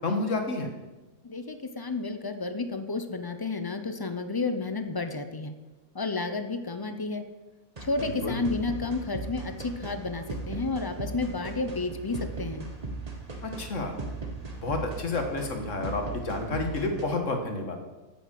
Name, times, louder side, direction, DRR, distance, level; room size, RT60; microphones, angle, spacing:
voice 1, 0.0-0.7 8.0-8.4 13.4-13.9 14.6-17.8, left 2 dB, 55° left, 4 dB, 1.8 m, -30 dB
voice 2, 1.2-5.5 5.9-7.2 7.8-12.7, left 3 dB, 30° left, 8 dB, 0.4 m, -31 dB
sound 1, 7.8-17.0, right 3 dB, 25° right, 1.3 m, -38 dB
10.0 x 7.1 x 7.6 m, 1.1 s
omnidirectional pair, 1.6 m